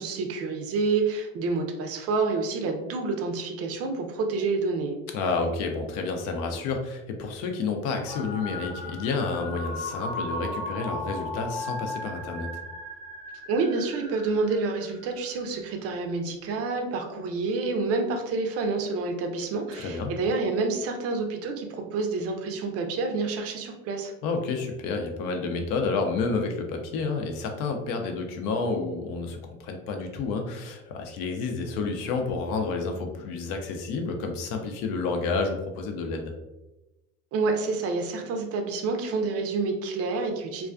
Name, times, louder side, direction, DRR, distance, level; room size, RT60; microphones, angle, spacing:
voice 1, 0.0-4.9 13.5-24.1 37.3-40.7, right 3 dB, 40° right, 4 dB, 0.5 m, -28 dB
voice 2, 5.1-12.5 19.7-20.1 24.2-36.3, left 4 dB, 60° left, 4 dB, 0.6 m, -30 dB
sound 1, 8.0-15.3, left 2 dB, ahead, 0.7 m, -37 dB
2.3 x 2.3 x 2.4 m, 1.0 s
supercardioid pair, 95°, 37 cm